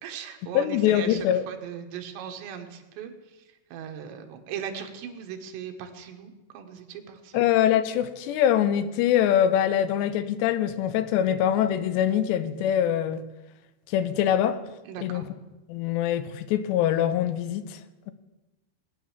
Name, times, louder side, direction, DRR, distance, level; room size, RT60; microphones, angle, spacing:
voice 1, 0.0-3.5 3.7-7.5 14.9-15.3, right 8 dB, 90° right, 3.8 m, -39 dB
voice 2, 0.5-1.4 7.3-13.2 13.9-14.6 15.0-15.2 15.7-17.8, left 10 dB, 90° left, 3.0 m, -23 dB
19.0 x 10.5 x 7.3 m
omnidirectional pair, 4.9 m